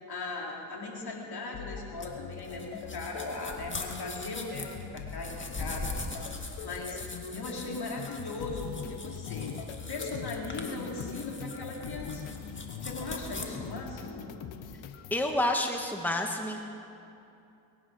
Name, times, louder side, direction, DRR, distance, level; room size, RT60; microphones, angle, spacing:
voice 1, 0.1-5.9 6.6-7.0 7.3-9.5 9.9-12.3 12.8-14.3, left 3 dB, 55° left, -1 dB, 3.4 m, -38 dB
sound 1, 1.5-15.2, left 7 dB, 75° left, 1.1 m, -42 dB
sound 2, 2.0-13.5, left 2 dB, 25° left, 2.3 m, -41 dB
voice 2, 15.1-16.6, left 1 dB, 5° left, 3 dB, 1.5 m, -29 dB
22.0 x 9.4 x 6.3 m, 2.7 s
supercardioid pair, 55°, 45 cm